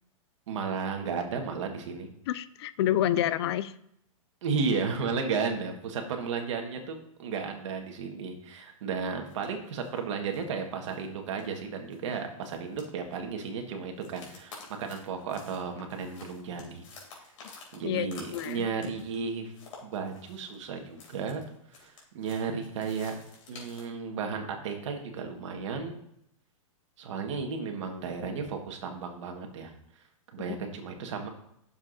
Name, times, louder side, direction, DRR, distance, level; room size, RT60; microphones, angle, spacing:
voice 1, 0.5-2.1 4.4-16.8 17.7-19.5 19.8-21.4 21.7-23.1 23.5-26.0 27.0-29.7 30.3-31.3, right 5 dB, 60° right, 4 dB, 1.5 m, -34 dB
voice 2, 2.3-3.7 17.8-18.1 18.3-18.7, left 12 dB, 50° left, 15 dB, 0.4 m, -28 dB
sound 1, 9.3-9.5 9.8-10.0 10.3-10.6 10.9-11.1 11.4-13.5 13.9-23.9, left 4 dB, 65° left, 2.8 m, -51 dB
10.5 x 6.9 x 2.7 m, 0.74 s
hypercardioid pair, 155°, 18 cm